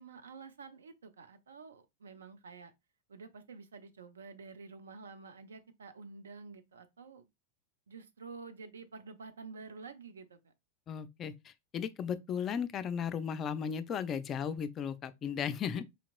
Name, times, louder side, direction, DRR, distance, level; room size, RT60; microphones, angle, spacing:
voice 1, 0.0-2.7 3.1-7.2 7.9-10.4, right 4 dB, 70° right, 0.5 m, -49 dB
voice 2, 10.9-15.8, left 7 dB, 30° left, 0.3 m, -36 dB
4.2 x 2.9 x 2.4 m
figure-of-eight pair, 90°, 0 cm